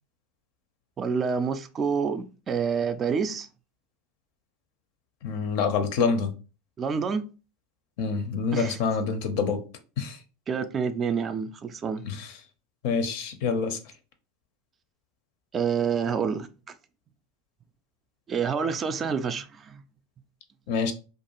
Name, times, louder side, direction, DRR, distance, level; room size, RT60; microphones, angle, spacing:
voice 1, 1.0-3.5 6.8-7.2 8.5-8.8 10.5-12.0 15.5-16.5 18.3-19.8, right 6 dB, 30° right, 0.3 m, -28 dB
voice 2, 5.2-6.3 8.0-9.6 10.0-10.2 12.0-12.3 12.8-13.8 20.7-20.9, left 5 dB, 60° left, 0.5 m, -26 dB
2.4 x 2.2 x 2.9 m
hypercardioid pair, 90°, 0 cm